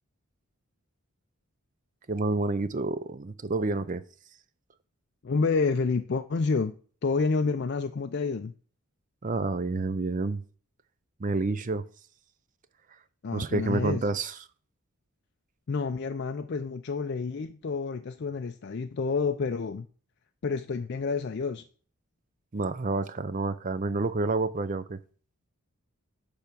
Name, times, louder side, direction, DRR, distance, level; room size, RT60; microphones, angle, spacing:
voice 1, 2.1-4.0 9.2-10.4 11.2-11.8 13.3-14.4 22.5-25.0, right 3 dB, 35° right, 0.5 m, -29 dB
voice 2, 5.2-6.8 7.0-8.5 13.2-14.0 15.7-19.9 20.4-21.6, left 4 dB, 50° left, 0.4 m, -29 dB
10.0 x 3.5 x 6.8 m
head